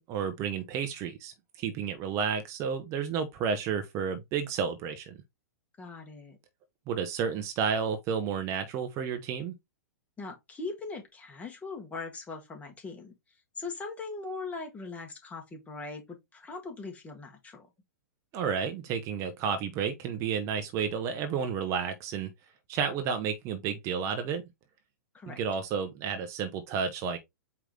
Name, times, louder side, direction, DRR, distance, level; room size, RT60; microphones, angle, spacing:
voice 1, 0.1-5.2 6.9-9.5 18.3-22.3 22.7-24.4 25.3-27.2, right 6 dB, 35° right, 0.8 m, -31 dB
voice 2, 5.8-6.4 10.2-13.1 13.5-17.7 25.1-25.4, left 3 dB, 15° left, 1.6 m, -40 dB
4.8 x 3.0 x 3.7 m
hypercardioid pair, 110°, 9 cm